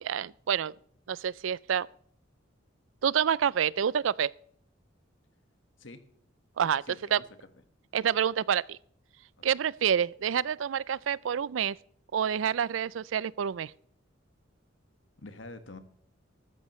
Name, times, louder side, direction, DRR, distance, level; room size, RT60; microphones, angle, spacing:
voice 1, 0.0-0.7 1.1-1.9 3.0-4.3 6.6-6.8 7.1-7.2 7.9-8.8 9.4-11.8 12.1-13.7, right 8 dB, 90° right, 0.4 m, -28 dB
voice 2, 6.8-7.2 9.4-9.5 15.2-15.8, left 2 dB, 75° left, 1.5 m, -46 dB
14.0 x 13.0 x 3.1 m
head